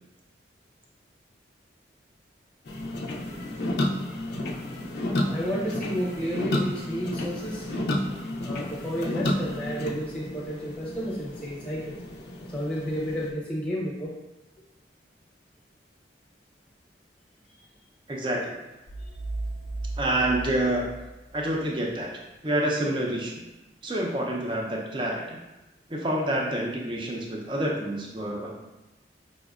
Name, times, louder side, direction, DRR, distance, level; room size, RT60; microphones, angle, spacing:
sound 1, 2.7-13.3, left 1 dB, 60° left, 0.4 m, -31 dB
voice 1, 5.3-7.7 8.4-11.8 12.5-14.1 19.0-19.1, equal, 5° left, -7 dB, 0.7 m, -31 dB
voice 2, 18.1-18.6 20.0-20.9 21.3-22.1 22.4-23.4 23.8-25.4 25.9-28.6, right 1 dB, 25° right, -1 dB, 0.5 m, -27 dB
sound 2, 18.9-21.6, right 2 dB, 70° right, 0.8 m, -35 dB
5.1 x 2.1 x 2.3 m, 1.0 s
head